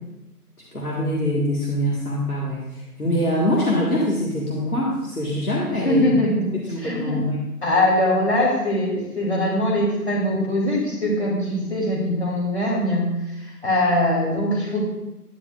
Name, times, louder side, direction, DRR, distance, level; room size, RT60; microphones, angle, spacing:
voice 1, 0.7-6.1 6.7-7.4, equal, 65° left, -5 dB, 1.8 m, -24 dB
voice 2, 5.8-6.5 6.8-7.2 7.6-14.8, left 1 dB, 45° left, -5 dB, 2.9 m, -22 dB
9.9 x 9.2 x 2.4 m, 0.96 s
figure-of-eight pair, 175°, 47 cm